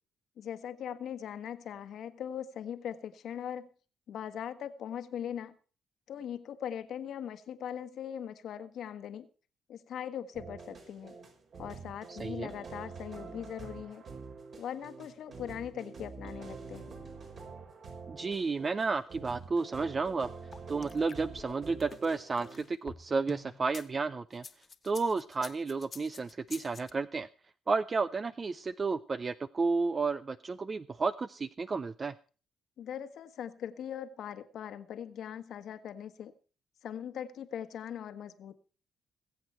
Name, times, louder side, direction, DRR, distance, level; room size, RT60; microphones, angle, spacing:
voice 1, 0.4-3.7 4.1-5.5 6.1-9.3 9.7-11.1 11.6-14.0 14.6-16.9 32.8-36.3 36.8-38.5, left 9 dB, 70° left, 10 dB, 1.4 m, -40 dB
sound 1, 10.3-22.7, right 4 dB, 55° right, 5.4 m, -47 dB
voice 2, 12.1-12.5 18.1-20.3 20.7-24.4 24.8-27.3 27.7-32.1, right 4 dB, 35° right, 14 dB, 0.5 m, -32 dB
sound 2, 20.5-23.9 24.3-26.9, left 4 dB, 35° left, 1.4 m, -48 dB
21.5 x 8.0 x 4.4 m, 0.38 s
cardioid pair, 90°, 0 cm